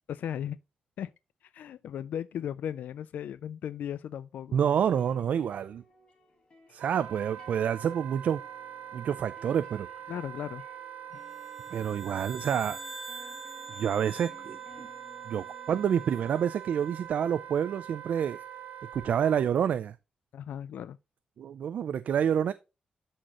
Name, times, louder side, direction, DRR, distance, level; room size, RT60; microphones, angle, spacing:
voice 1, 0.1-0.6 1.0-1.1 1.5-4.6 10.1-10.6 20.3-21.0, left 9 dB, 85° left, 0.3 m, -36 dB
voice 2, 4.5-5.8 6.7-8.4 8.9-9.9 11.7-12.8 13.1-13.3 13.8-14.9 15.3-18.4 18.9-20.0 21.4-22.5, right 8 dB, 60° right, 0.4 m, -28 dB
sound 1, 4.6-17.8 18.9-19.8, left 3 dB, 35° left, 1.8 m, -58 dB
Wind instrument woodwind instrument, 6.8-19.5, right 10 dB, 80° right, 1.2 m, -43 dB
sound 2, 11.3-15.8, right 1 dB, 10° right, 1.0 m, -46 dB
12.0 x 4.3 x 2.9 m
wide cardioid pair, 175°, 3 cm